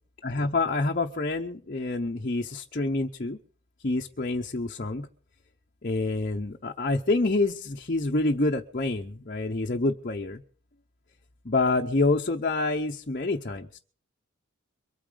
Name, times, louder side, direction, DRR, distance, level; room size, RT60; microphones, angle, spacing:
voice 1, 0.2-3.4 3.8-5.1 5.8-10.4 11.4-13.8, left 2 dB, 40° left, 1 dB, 0.8 m, -27 dB
23.5 x 8.9 x 5.0 m, 0.44 s
head